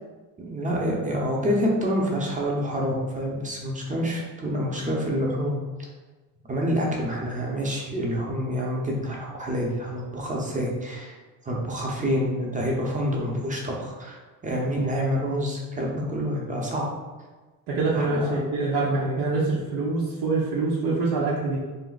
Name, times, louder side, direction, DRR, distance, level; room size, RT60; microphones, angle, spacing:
voice 1, 0.4-5.6 6.5-11.1 11.4-16.9 17.9-18.4, equal, 20° right, -2 dB, 0.7 m, -27 dB
voice 2, 17.7-21.6, right 3 dB, 70° right, -6 dB, 0.8 m, -25 dB
2.4 x 2.1 x 3.9 m, 1.3 s
cardioid pair, 85°, 42 cm